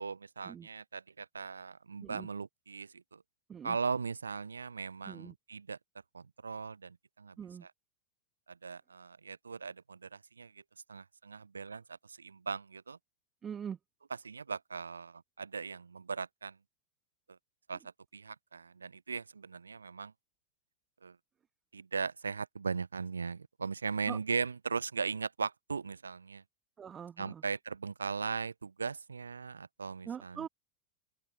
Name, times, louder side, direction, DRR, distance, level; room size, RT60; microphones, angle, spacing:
voice 1, 0.0-3.2 3.6-5.8 6.1-7.4 8.5-10.6 10.9-11.8 12.1-13.0 14.2-16.6 17.7-17.8 18.1-20.1 21.0-21.2 21.7-26.4 27.2-30.5, right 5 dB, 75° right, 0.6 m, -38 dB
voice 2, 5.0-5.3 7.4-7.7 13.4-13.8 24.1-24.2 26.8-27.4 30.1-30.5, right 8 dB, 20° right, 1.6 m, -43 dB
open air
figure-of-eight pair, 90°, 0 cm